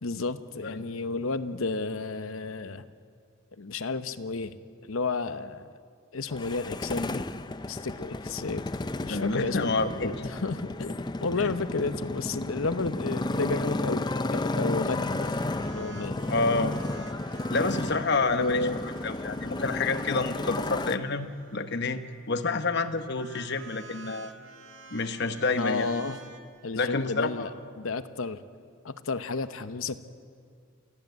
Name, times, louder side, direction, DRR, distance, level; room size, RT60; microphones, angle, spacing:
voice 1, 0.0-2.8 3.6-4.6 4.9-5.7 6.1-7.2 7.7-8.6 9.0-15.3 15.6-16.2 18.1-18.8 25.6-26.2 26.6-28.4 28.8-30.0, left 3 dB, 75° left, 12 dB, 0.9 m, -32 dB
Motorcycle, 6.3-21.0, left 2 dB, 20° left, 0.5 m, -33 dB
voice 2, 9.1-10.1 11.4-11.5 16.3-16.7 17.5-18.7 19.0-22.0 22.3-24.3 24.9-25.9 26.7-27.5, left 3 dB, 55° left, 9 dB, 1.1 m, -28 dB
sound 1, 14.9-22.2 23.1-26.4, right 4 dB, 60° right, 2.0 m, -49 dB
28.5 x 14.5 x 8.1 m, 2.2 s
head